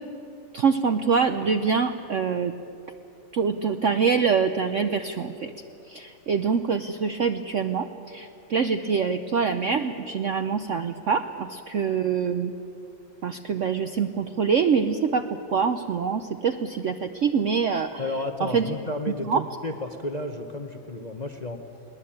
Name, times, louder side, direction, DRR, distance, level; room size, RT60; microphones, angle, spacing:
voice 1, 0.5-2.5 3.3-5.5 5.9-12.5 13.2-15.2 15.5-17.9 18.5-18.7 19.3-19.4, right 6 dB, 60° right, 8 dB, 0.8 m, -25 dB
voice 2, 18.0-21.6, left 2 dB, 30° left, 5 dB, 0.8 m, -32 dB
21.0 x 19.0 x 8.8 m, 2.8 s
omnidirectional pair, 2.0 m